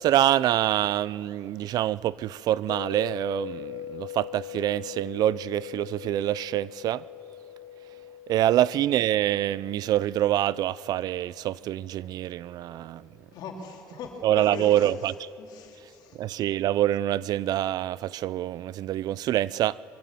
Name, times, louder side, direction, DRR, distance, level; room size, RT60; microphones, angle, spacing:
voice 1, 0.0-7.0 8.3-13.1 14.2-15.2 16.2-20.0, right 13 dB, 60° right, 0.4 m, -26 dB
sound 1, 2.7-12.8, left 12 dB, 85° left, 0.9 m, -42 dB
voice 2, 13.3-14.9 15.4-16.2, left 4 dB, 70° left, 3.0 m, -40 dB
23.5 x 14.5 x 7.5 m
cardioid pair, 125°, 8 cm